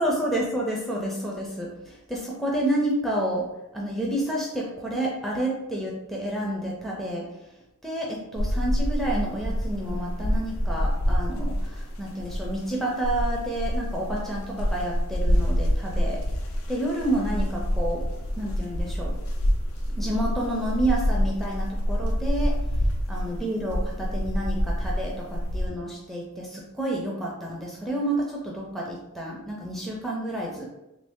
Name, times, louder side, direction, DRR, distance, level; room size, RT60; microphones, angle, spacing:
voice 1, 0.0-7.3 7.8-16.2 16.7-18.0 18.4-19.2 20.0-22.6 23.1-30.8, right 1 dB, ahead, -3 dB, 0.4 m, -29 dB
sound 1, 8.4-25.7, equal, 80° left, 0.5 m, -27 dB
3.1 x 2.6 x 3.5 m, 0.90 s
head